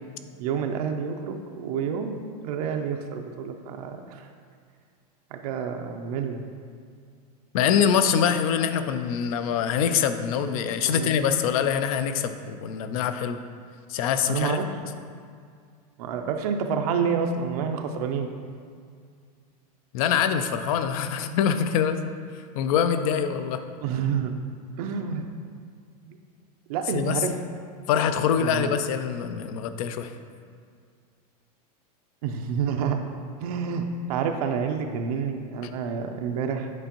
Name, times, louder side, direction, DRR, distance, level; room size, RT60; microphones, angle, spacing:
voice 1, 0.4-4.3 5.3-6.4 10.8-11.1 14.3-14.7 16.0-18.3 23.8-24.3 24.8-25.3 26.1-26.2 26.7-27.3 28.4-28.8 32.2-33.0 33.4-36.7, right 6 dB, 70° right, 4 dB, 0.5 m, -28 dB
voice 2, 7.5-13.4 13.9-14.6 19.9-22.0 22.6-23.6 26.9-27.2 27.9-30.1, left 8 dB, 65° left, 9 dB, 0.5 m, -24 dB
8.0 x 4.4 x 2.9 m, 2.1 s
supercardioid pair, 150°, 20 cm